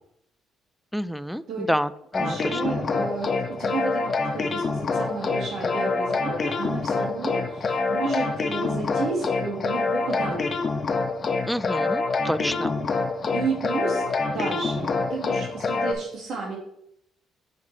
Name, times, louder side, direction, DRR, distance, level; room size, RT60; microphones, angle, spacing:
voice 1, 0.9-2.6 11.5-12.7, equal, ahead, 15 dB, 0.3 m, -28 dB
sound 1, 2.1-15.9, left 4 dB, 40° left, 0.8 m, -26 dB
voice 2, 2.2-10.6 12.4-12.9 13.3-16.6, right 4 dB, 70° right, -2 dB, 1.8 m, -32 dB
6.5 x 5.3 x 3.2 m, 0.75 s
supercardioid pair, 75°, 0 cm